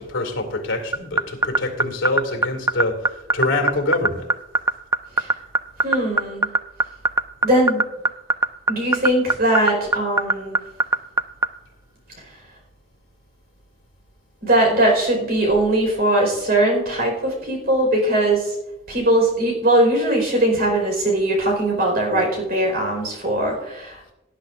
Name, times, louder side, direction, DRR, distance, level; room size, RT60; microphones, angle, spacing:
voice 1, 0.0-4.3, left 2 dB, 85° left, 5 dB, 2.3 m, -25 dB
sound 1, 0.9-11.5, right 3 dB, 15° right, 0.3 m, -17 dB
voice 2, 5.8-6.5 7.4-7.8 8.7-10.6 14.4-18.5 18.9-24.0, right 1 dB, 50° right, 0 dB, 4.7 m, -20 dB
18.5 x 10.5 x 2.6 m, 0.94 s
head